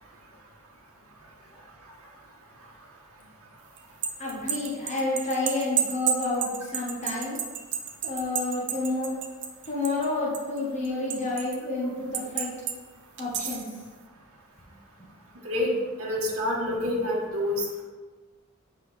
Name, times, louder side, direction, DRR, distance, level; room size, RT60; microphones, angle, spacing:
sound 1, 3.8-10.1 10.3-11.6 12.1-12.8 13.2-13.7, right 8 dB, 55° right, 0.7 m, -30 dB
voice 1, 4.2-6.5 6.7-7.4 8.0-9.1 9.7-12.5 13.2-13.6, left 2 dB, 30° left, -4 dB, 1.2 m, -29 dB
voice 2, 16.0-17.8, left 1 dB, 70° right, -4 dB, 1.2 m, -27 dB
7.5 x 5.4 x 3.3 m, 1.4 s
head